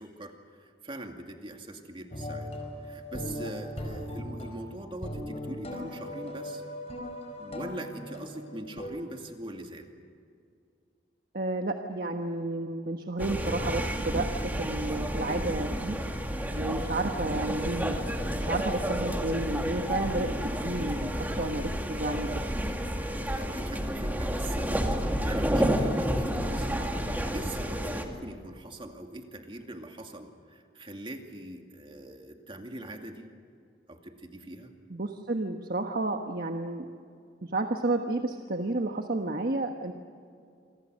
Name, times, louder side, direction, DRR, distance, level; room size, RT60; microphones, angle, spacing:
voice 1, 0.0-6.6 7.4-9.9 23.4-33.3 33.9-34.7, right 1 dB, 30° right, 3 dB, 2.4 m, -42 dB
sound 1, 2.1-8.9, left 1 dB, 35° left, 4.9 m, -38 dB
voice 2, 11.3-14.3 14.6-16.0 16.5-18.0 18.3-22.5 34.9-36.9 37.4-39.9, right 2 dB, 55° right, 4 dB, 1.3 m, -31 dB
sound 2, 13.2-28.0, equal, 10° right, 2.2 m, -30 dB
28.5 x 24.5 x 6.5 m, 2.3 s
head